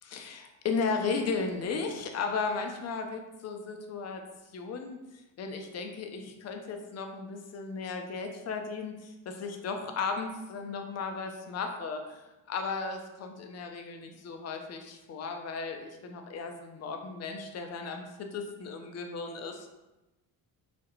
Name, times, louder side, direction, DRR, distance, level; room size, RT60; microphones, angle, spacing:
voice 1, 0.1-4.2 4.5-5.0 5.4-12.2 12.5-19.7, left 4 dB, 35° left, 4 dB, 0.4 m, -35 dB
2.3 x 2.1 x 2.9 m, 1.0 s
supercardioid pair, 55°, 49 cm